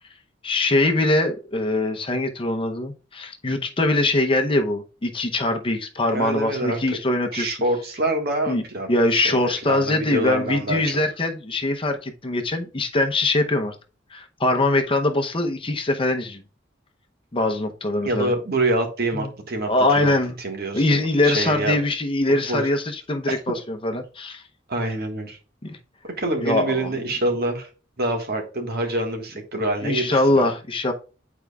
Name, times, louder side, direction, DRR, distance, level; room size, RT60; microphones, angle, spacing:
voice 1, 0.4-7.6 8.5-8.6 8.9-13.8 14.1-16.4 17.3-18.3 19.1-19.3 19.7-20.4 20.7-24.4 25.6-25.8 26.4-26.9 29.8-30.9, left 2 dB, 30° left, 0.8 m, -22 dB
voice 2, 6.1-7.0 7.3-9.4 9.6-11.0 18.0-19.7 20.0-20.1 20.4-21.8 22.5-22.7 23.3-23.4 24.7-25.4 26.2-27.7 28.0-30.4, right 2 dB, 55° right, 1.6 m, -26 dB
8.9 x 4.6 x 2.4 m
head